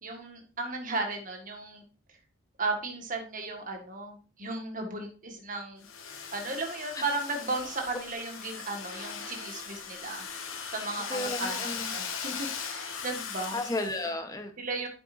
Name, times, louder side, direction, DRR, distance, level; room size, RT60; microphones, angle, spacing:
voice 1, 0.0-1.8 2.6-5.8 6.3-10.3 10.7-11.5 11.9-13.6 14.6-14.9, right 3 dB, 40° right, 3 dB, 1.8 m, -35 dB
Domestic sounds home sounds, 5.8-14.0, left 6 dB, 90° left, 1.4 m, -39 dB
voice 2, 11.1-12.0 13.5-14.5, left 2 dB, 20° left, 5 dB, 1.1 m, -33 dB
8.8 x 7.8 x 2.7 m, 0.36 s
head